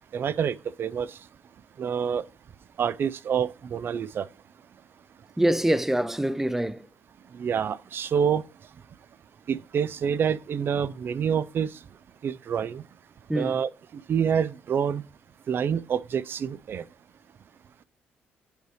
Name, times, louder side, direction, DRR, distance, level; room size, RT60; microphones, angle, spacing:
voice 1, 0.1-1.2 1.8-2.2 2.8-4.3 7.3-8.4 9.5-11.8 12.2-12.8 13.3-15.0 15.5-16.8, right 7 dB, 55° right, 0.4 m, -27 dB
voice 2, 5.4-6.9 13.3-13.6, right 1 dB, 10° right, 0.6 m, -25 dB
8.1 x 4.8 x 3.2 m
supercardioid pair, 60°, 4 cm